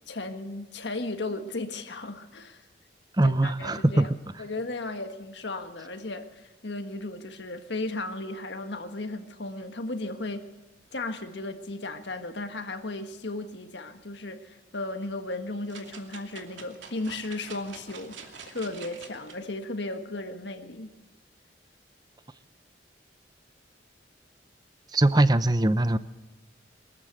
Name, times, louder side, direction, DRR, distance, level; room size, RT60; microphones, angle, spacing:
voice 1, 0.0-2.6 3.2-4.1 4.4-10.4 10.9-20.9, left 2 dB, 70° left, 1.5 m, -35 dB
voice 2, 3.2-4.1 24.9-26.0, right 1 dB, 20° right, 0.7 m, -21 dB
sound 1, 15.7-19.4 19.9-20.0, right 5 dB, 80° right, 2.6 m, -46 dB
23.5 x 14.0 x 8.0 m
head